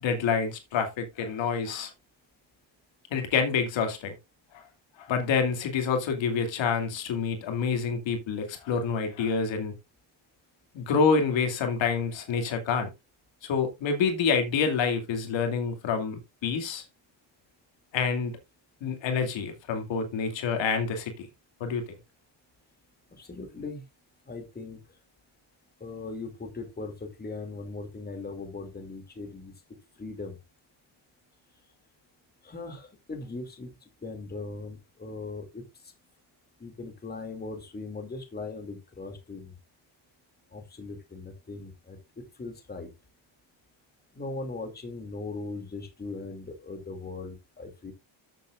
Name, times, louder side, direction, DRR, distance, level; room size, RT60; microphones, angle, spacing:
voice 1, 0.0-1.9 3.1-4.1 4.5-4.6 5.0-9.7 10.7-12.9 13.4-16.8 17.9-18.4 18.8-21.3 21.6-21.8, left 5 dB, 65° left, 2.5 m, -27 dB
voice 2, 23.2-23.8 24.3-24.8 25.8-29.5 30.0-30.4 32.4-33.7 34.0-35.9 36.6-39.5 40.5-42.9 44.1-47.9, left 3 dB, 20° left, 2.6 m, -39 dB
13.5 x 7.4 x 2.5 m
cardioid pair, 120°, 48 cm